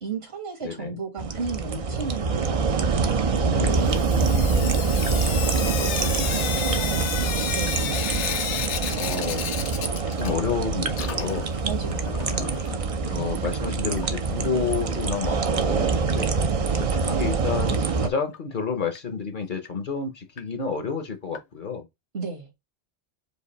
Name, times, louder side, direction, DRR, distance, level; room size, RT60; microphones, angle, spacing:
voice 1, 0.0-7.1 7.5-8.1 11.6-12.6 16.3-16.5 22.1-22.5, right 4 dB, 65° right, 1.8 m, -35 dB
voice 2, 0.6-1.0 3.5-3.8 8.9-11.5 12.4-12.6 13.0-16.3 16.8-21.9, left 5 dB, 50° left, 0.8 m, -30 dB
sound 1, 1.2-18.1, right 4 dB, 45° right, 0.4 m, -25 dB
Sink (filling or washing) / Drip, 3.8-10.6 10.9-12.8 14.0-14.1 14.4-14.5 14.7-14.8 17.7-17.8 18.3-18.4 19.0-19.1 19.7-19.8 20.4-20.5 21.3-21.4, left 8 dB, 85° left, 1.0 m, -32 dB
5.0 x 2.6 x 4.0 m
omnidirectional pair, 1.1 m